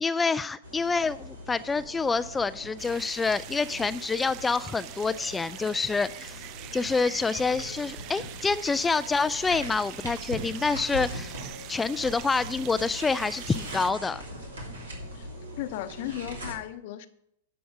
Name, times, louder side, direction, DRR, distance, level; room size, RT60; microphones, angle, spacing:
voice 1, 0.0-6.4 6.7-11.3 11.7-14.2, left 4 dB, 15° left, 0.3 m, -27 dB
sound 1, 0.6-16.5, equal, 80° right, 2.9 m, -41 dB
sound 2, 2.8-13.9, right 13 dB, 40° right, 0.5 m, -44 dB
voice 2, 15.6-17.1, left 13 dB, 55° left, 0.8 m, -35 dB
11.0 x 5.8 x 6.2 m
hypercardioid pair, 105°, 0 cm